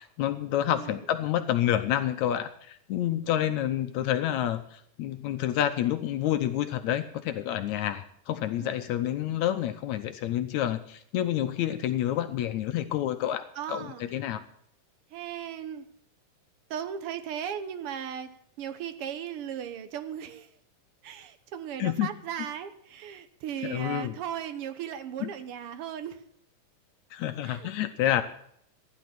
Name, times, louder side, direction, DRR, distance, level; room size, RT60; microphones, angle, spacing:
voice 1, 0.0-14.4 21.8-22.1 23.6-24.2 25.2-25.3 27.1-28.2, left 12 dB, 75° left, 9 dB, 2.0 m, -28 dB
voice 2, 0.7-1.1 8.6-8.8 13.5-14.1 15.1-15.9 16.7-20.5 21.0-26.2 27.4-27.7, right 9 dB, 60° right, 10 dB, 1.6 m, -37 dB
15.0 x 11.0 x 5.9 m, 0.67 s
omnidirectional pair, 3.6 m